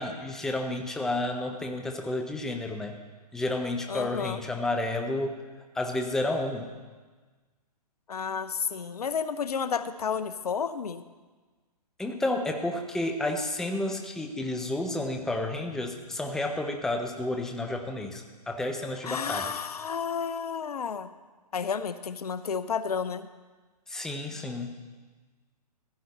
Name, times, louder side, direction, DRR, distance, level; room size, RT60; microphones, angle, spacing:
voice 1, 0.0-3.0 3.3-5.4 5.7-6.7 12.0-19.5 23.9-24.7, left 2 dB, ahead, 4 dB, 0.6 m, -31 dB
voice 2, 3.9-4.4 8.1-11.0 19.0-21.1 21.5-23.3, left 6 dB, 70° left, 13 dB, 0.7 m, -31 dB
15.5 x 10.0 x 4.1 m, 1.3 s
figure-of-eight pair, 130°, 21 cm